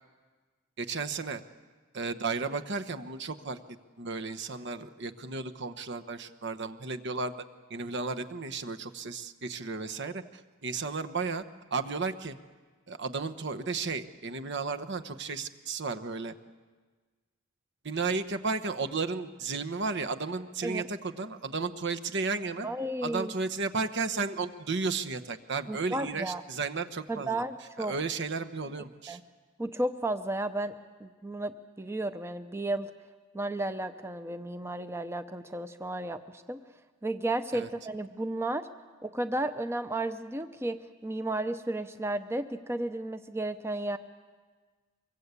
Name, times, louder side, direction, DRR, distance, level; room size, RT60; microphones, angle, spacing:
voice 1, 0.8-1.4 1.9-3.6 4.0-7.3 7.7-11.4 11.7-12.3 12.9-16.3 17.8-22.7 23.0-27.4 27.8-29.2 37.5-37.7, right 4 dB, 60° right, 8 dB, 1.1 m, -33 dB
voice 2, 22.6-23.3 25.7-26.4 27.1-27.9 29.1-29.2 29.6-30.7 31.0-32.9 33.3-36.6 37.0-38.7 39.0-44.0, right 1 dB, 15° right, 9 dB, 0.7 m, -33 dB
24.0 x 23.0 x 8.3 m, 1.4 s
head